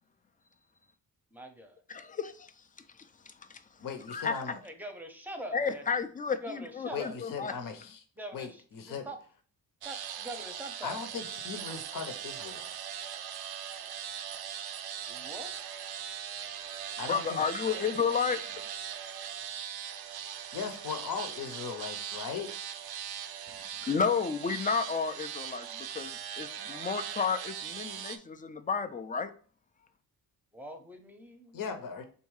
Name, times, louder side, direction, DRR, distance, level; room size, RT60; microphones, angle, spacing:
voice 1, 1.3-1.8 4.6-5.8 6.4-7.2 8.2-9.2 9.8-11.0 15.1-15.5 30.5-31.7, right 1 dB, 5° right, 0.8 m, -43 dB
voice 2, 1.9-2.5 4.1-4.4 5.5-7.5 17.1-18.4 23.8-29.3, left 6 dB, 20° left, 0.4 m, -31 dB
voice 3, 3.8-4.6 6.9-8.0 8.3-9.1 10.8-12.7 17.0-17.6 20.5-22.5 31.5-32.0, left 6 dB, 60° left, 0.8 m, -38 dB
sound 1, 9.8-28.2, right 9 dB, 75° right, 0.6 m, -40 dB
3.6 x 2.7 x 4.7 m
cardioid pair, 95°, 38 cm